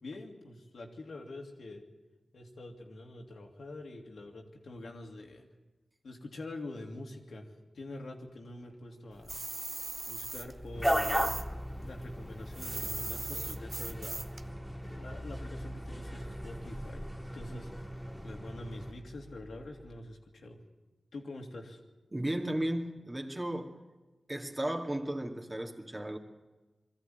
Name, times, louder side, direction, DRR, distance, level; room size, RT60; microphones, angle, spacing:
voice 1, 0.0-1.8 2.3-5.5 6.0-7.5 7.7-9.3 10.1-11.4 11.8-14.2 14.9-17.1 17.3-17.7 18.0-20.6 21.1-21.8, left 2 dB, 80° left, 1 dB, 2.4 m, -45 dB
Mechanical fan, 8.7-20.0, equal, 25° left, 1.3 m, -48 dB
sound 1, 9.3-11.4 11.7-14.4, right 3 dB, 45° right, 0.9 m, -39 dB
sound 2, 10.7-18.9, equal, ahead, 2.5 m, -37 dB
voice 2, 22.1-23.8 24.3-26.2, right 1 dB, 25° right, 2 dB, 2.3 m, -34 dB
21.0 x 14.0 x 9.3 m, 1.2 s
cardioid pair, 45°, 0 cm